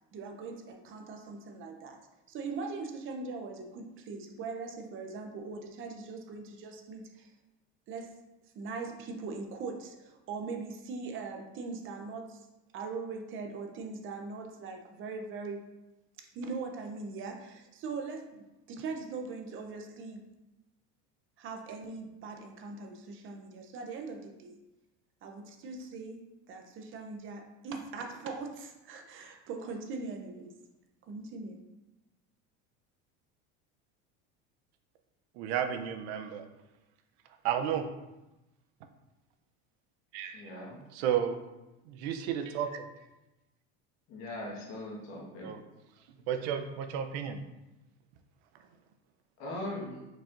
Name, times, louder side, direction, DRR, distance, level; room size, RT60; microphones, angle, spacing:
voice 1, 0.1-2.0 2.3-7.3 7.9-8.1 8.5-12.5 12.7-15.7 16.2-20.2 21.4-24.6 25.2-30.5 31.1-31.6, right 4 dB, 40° right, 4 dB, 0.6 m, -41 dB
voice 2, 35.4-36.4 37.4-37.8 40.1-40.4 40.9-41.3 41.8-42.8 45.4-45.6 46.3-47.4, right 9 dB, 85° right, 7 dB, 0.6 m, -32 dB
voice 3, 40.3-40.8 44.1-45.5 49.4-50.1, left 1 dB, 55° left, -2 dB, 1.5 m, -40 dB
4.7 x 4.2 x 2.5 m, 0.98 s
cardioid pair, 140°, 31 cm